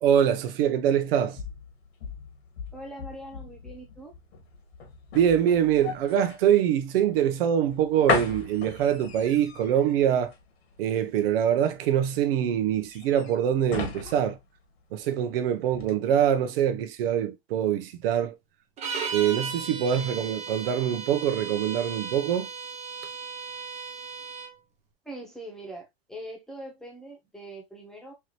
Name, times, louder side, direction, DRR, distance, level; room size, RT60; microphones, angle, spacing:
voice 1, 0.0-1.4 5.1-10.3 10.8-14.4 14.9-18.4 19.1-22.5, right 9 dB, 65° right, 0.9 m, -24 dB
sound 1, 1.0-15.3 15.7-15.9, left 5 dB, 90° left, 1.9 m, -36 dB
voice 2, 2.7-4.1 19.9-20.4 25.0-28.1, right 1 dB, ahead, 1.2 m, -42 dB
sound 2, 18.8-24.5, right 5 dB, 20° right, 0.8 m, -36 dB
4.7 x 2.9 x 3.0 m
supercardioid pair, 150°, 31 cm